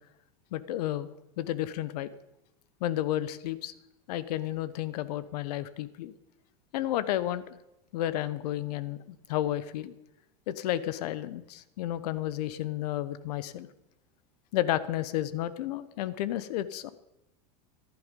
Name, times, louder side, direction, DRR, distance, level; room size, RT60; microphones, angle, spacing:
voice 1, 0.5-1.1 1.4-2.1 2.8-3.7 4.1-6.1 6.7-7.6 7.9-9.9 10.5-13.7 14.5-16.9, left 13 dB, 75° left, 16 dB, 0.9 m, -32 dB
14.5 x 10.5 x 5.3 m, 0.91 s
supercardioid pair, 130°, 21 cm